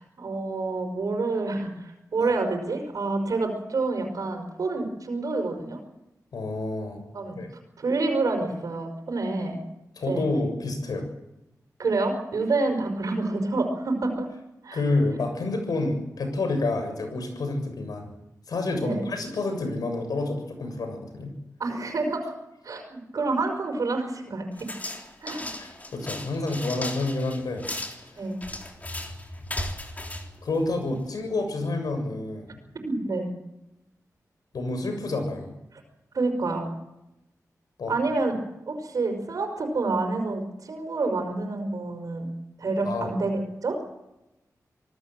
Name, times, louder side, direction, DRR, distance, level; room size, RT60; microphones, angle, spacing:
voice 1, 0.0-5.8 7.1-7.4 7.8-9.6 10.1-10.3 11.8-14.3 14.6-14.8 18.8-19.0 21.6-22.3 22.6-24.7 25.2-25.5 28.2-28.4 32.8-33.3 35.7-35.8 36.1-36.7 37.9-38.4 38.7-42.3 42.6-43.8, right 3 dB, 70° right, 4 dB, 5.3 m, -28 dB
voice 2, 6.3-7.0 7.3-7.5 10.0-11.1 14.7-18.1 18.5-21.3 25.6-27.7 30.4-32.6 34.5-35.5 37.8-37.9 42.8-43.1, left 2 dB, 90° left, 6 dB, 7.0 m, -29 dB
sound 1, 24.6-31.1, left 1 dB, 25° left, 3.6 m, -36 dB
26.5 x 17.5 x 7.7 m, 0.91 s
wide cardioid pair, 130°, 6 cm